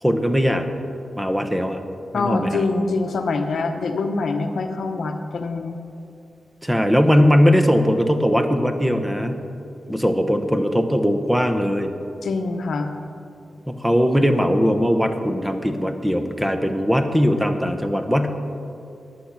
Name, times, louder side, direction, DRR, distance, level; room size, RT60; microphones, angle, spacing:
voice 1, 0.0-0.7 1.1-1.8 2.1-2.6 6.6-9.4 9.9-11.9 13.7-18.4, equal, 5° right, 7 dB, 1.0 m, -20 dB
voice 2, 2.1-5.8 12.2-12.9, left 3 dB, 75° left, 6 dB, 0.8 m, -24 dB
11.5 x 8.2 x 5.9 m, 2.6 s
cardioid pair, 60°, 0 cm